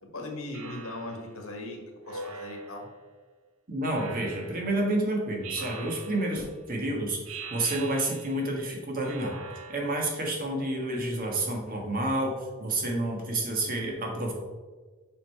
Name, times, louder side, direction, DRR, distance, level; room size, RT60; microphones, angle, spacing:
voice 1, 0.0-1.8 2.1-2.9, left 2 dB, 70° left, 1 dB, 1.6 m, -38 dB
Speech synthesizer, 0.5-1.3 2.1-3.0 3.9-4.7 5.4-6.4 7.3-8.5 9.0-10.1, right 3 dB, 65° right, 0.9 m, -42 dB
voice 2, 3.7-9.4 9.7-14.3, right 1 dB, 40° right, 0 dB, 1.4 m, -29 dB
6.2 x 5.5 x 4.6 m, 1.4 s
head